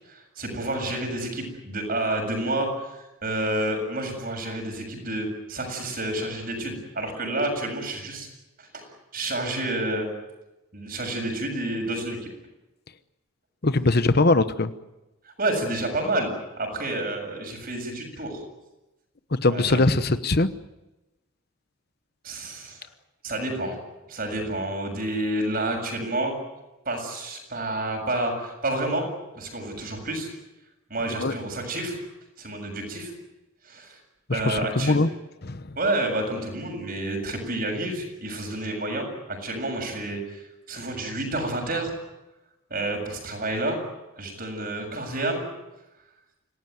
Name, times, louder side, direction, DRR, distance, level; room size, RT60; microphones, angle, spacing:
voice 1, 0.1-8.3 8.6-8.9 9.1-10.1 10.7-12.2 15.4-16.3 16.6-18.4 19.5-19.8 22.2-22.8 23.2-23.8 24.1-26.3 26.9-29.1 29.4-30.3 30.9-32.0 32.4-33.1 33.7-34.0 34.3-34.9 35.8-41.9 42.7-43.8 44.2-45.5, right 1 dB, 45° right, 3 dB, 7.2 m, -29 dB
voice 2, 13.6-14.7 19.3-20.5 31.2-31.3 34.3-35.1 35.4-35.8, left 2 dB, 50° left, 12 dB, 1.0 m, -21 dB
26.5 x 18.0 x 9.5 m, 1.0 s
head